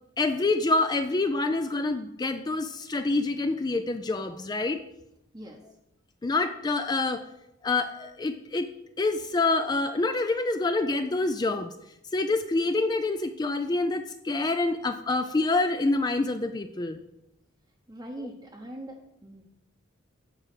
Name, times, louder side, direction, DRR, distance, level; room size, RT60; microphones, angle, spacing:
voice 1, 0.2-4.8 6.2-7.3 7.6-8.7 9.0-11.7 12.1-17.0, left 3 dB, 20° left, 8 dB, 0.3 m, -27 dB
voice 2, 17.9-19.4, right 1 dB, 20° right, -2 dB, 0.8 m, -41 dB
9.0 x 4.9 x 6.0 m, 0.86 s
head